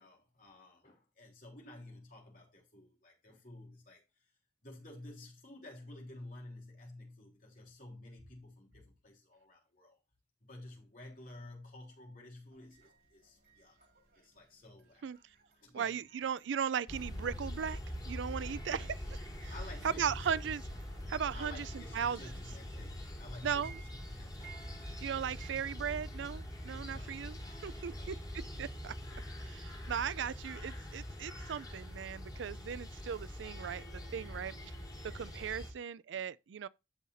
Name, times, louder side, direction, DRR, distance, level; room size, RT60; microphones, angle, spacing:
voice 1, 0.0-4.2 4.6-10.0 10.4-13.8 14.1-15.1 15.6-16.0 19.5-20.4 21.3-24.6 26.7-27.2 27.9-28.1, left 1 dB, 45° left, 3.7 m, -52 dB
sound 1, 12.5-25.6, right 8 dB, 60° right, 5.8 m, -62 dB
voice 2, 15.7-17.8 18.1-19.5 20.0-20.6 21.1-22.2 23.4-23.8 25.0-27.4 27.6-28.2 28.6-28.9 29.4-34.5 35.0-36.7, right 7 dB, 85° right, 0.4 m, -37 dB
sound 2, 16.9-35.7, equal, 20° left, 3.6 m, -44 dB
14.5 x 5.7 x 2.6 m
head